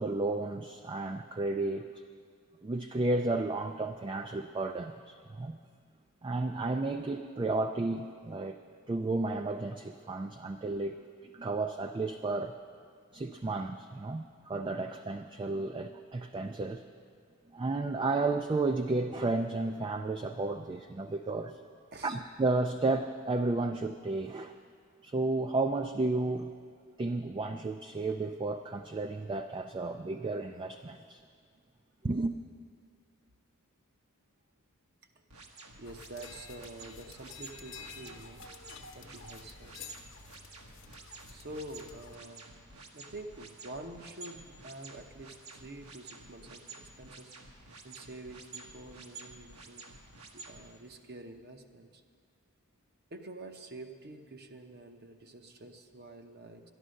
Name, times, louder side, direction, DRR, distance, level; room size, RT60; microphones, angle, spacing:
voice 1, 0.0-1.9 2.6-5.6 6.2-8.6 8.9-11.0 11.3-12.6 13.1-16.8 17.5-21.6 22.0-24.5 25.0-26.5 27.0-31.2 32.0-32.3, right 2 dB, 20° right, 6 dB, 0.3 m, -32 dB
sound 1, 35.3-50.6, right 3 dB, 80° right, 1.4 m, -50 dB
sound 2, 35.8-42.2, left 5 dB, 55° left, 1.0 m, -50 dB
voice 2, 35.8-38.4 38.9-39.7 41.3-42.4 42.9-49.9 50.3-52.0 53.1-56.6, right 2 dB, 45° right, 6 dB, 0.8 m, -47 dB
12.0 x 11.0 x 6.4 m, 2.1 s
head